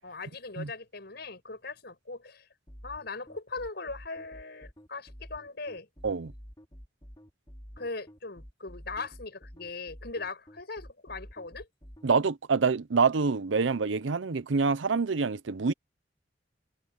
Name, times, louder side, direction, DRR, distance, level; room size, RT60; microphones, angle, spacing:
voice 1, 0.0-2.5 2.8-5.9 7.8-11.7, left 3 dB, 60° left, 6.7 m, -39 dB
sound 1, 2.7-12.1, equal, 25° left, 4.5 m, -48 dB
voice 2, 12.0-15.7, right 4 dB, 85° right, 0.7 m, -26 dB
head